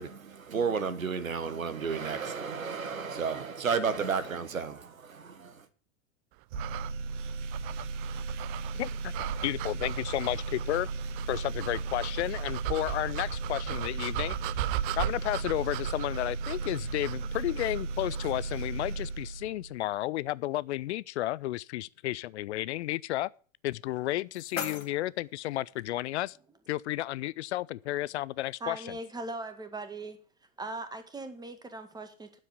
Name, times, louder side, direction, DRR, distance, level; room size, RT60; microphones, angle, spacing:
voice 1, 0.0-5.6, right 5 dB, 85° right, 1.4 m, -32 dB
sound 1, 6.5-18.4, right 16 dB, 40° right, 0.5 m, -38 dB
sound 2, 6.5-19.9, right 3 dB, 65° right, 1.2 m, -36 dB
voice 2, 8.7-10.9 11.3-14.4 15.0-23.3 23.6-26.4 26.7-28.9, left 16 dB, 60° left, 0.5 m, -32 dB
sound 3, 23.8-25.8, left 7 dB, 80° left, 1.6 m, -41 dB
voice 3, 28.6-30.2 30.6-32.4, right 2 dB, 10° right, 1.8 m, -39 dB
9.4 x 7.6 x 8.1 m
hypercardioid pair, 100°, 40 cm